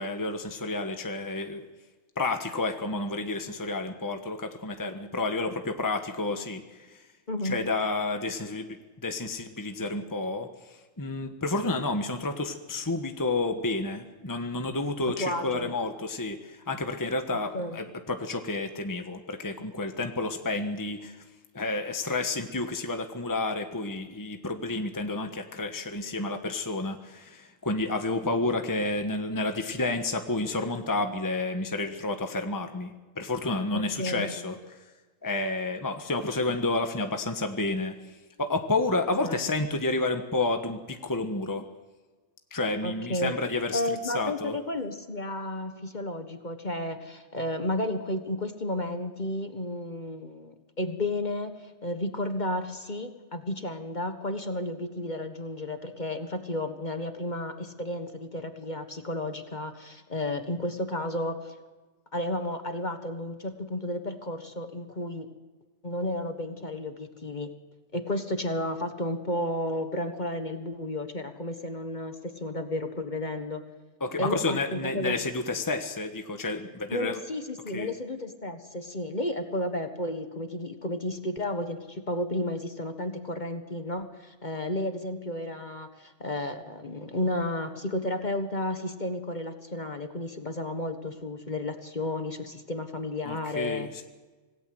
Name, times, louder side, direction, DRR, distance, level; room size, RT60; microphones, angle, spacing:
voice 1, 0.0-1.6 2.2-7.0 7.4-8.8 9.0-21.2 21.5-34.8 35.2-37.9 38.4-41.6 42.5-44.6 74.0-77.2 77.7-77.9 93.3-94.0, left 2 dB, 15° left, 6 dB, 1.3 m, -30 dB
voice 2, 7.3-7.6 15.2-15.7 17.3-17.8 33.7-34.3 39.2-39.4 42.8-43.3 43.7-51.5 51.8-61.5 62.1-65.3 65.8-67.5 67.9-73.6 74.2-75.2 76.9-93.9, left 1 dB, 35° left, 7 dB, 1.6 m, -32 dB
26.0 x 18.0 x 7.9 m, 1.3 s
omnidirectional pair, 1.3 m